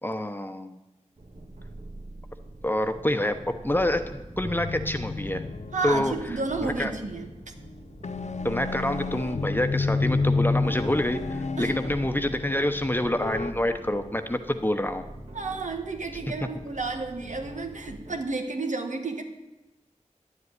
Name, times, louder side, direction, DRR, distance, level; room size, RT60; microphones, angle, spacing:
voice 1, 0.0-0.8 2.6-3.3 3.6-5.4 5.8-6.9 8.4-15.0, left 1 dB, 15° left, 8 dB, 1.0 m, -27 dB
sound 1, 1.2-18.2, right 1 dB, 60° right, 1.8 m, -44 dB
sound 2, 4.4-7.2 7.6-7.8 8.0-13.5, left 3 dB, 70° left, 0.7 m, -30 dB
voice 2, 5.7-7.3 11.6-11.8 15.3-19.2, right 3 dB, 80° right, 4 dB, 1.6 m, -31 dB
11.0 x 7.9 x 9.7 m, 1.0 s
wide cardioid pair, 60°, 12 cm